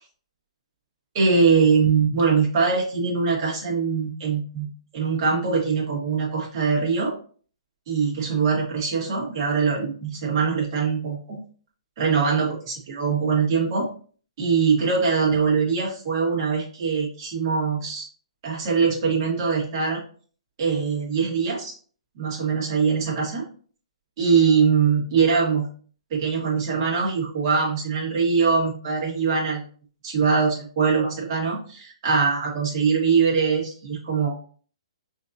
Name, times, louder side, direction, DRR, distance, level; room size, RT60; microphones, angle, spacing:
voice 1, 1.1-7.1 7.9-11.4 12.0-13.9 14.4-18.1 18.4-20.0 20.6-21.7 22.1-23.4 24.2-25.7 26.1-29.6 30.0-34.3, right 5 dB, 40° right, -3 dB, 1.6 m, -22 dB
5.6 x 2.8 x 2.5 m, 0.43 s
hypercardioid pair, 155°, 3 cm